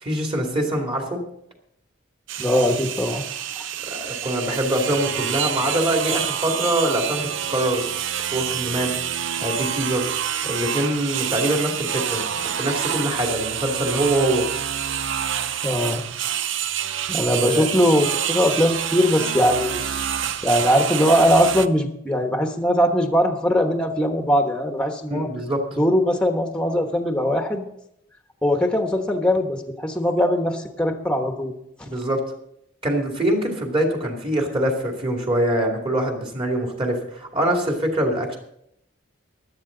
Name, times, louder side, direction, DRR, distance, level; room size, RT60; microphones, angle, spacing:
voice 1, 0.0-1.2 3.8-7.8 8.3-9.0 9.4-10.1 10.4-14.5 17.2-17.7 25.1-25.6 31.9-32.2 32.8-38.4, right 1 dB, 30° right, 1 dB, 2.5 m, -24 dB
sound 1, 2.3-21.7, right 9 dB, 70° right, 0.6 m, -27 dB
voice 2, 2.4-3.3 15.6-16.0 17.1-20.0 20.4-25.3 25.8-27.7 28.4-31.5, equal, 5° left, 4 dB, 1.2 m, -21 dB
16.0 x 11.5 x 3.9 m, 0.76 s
head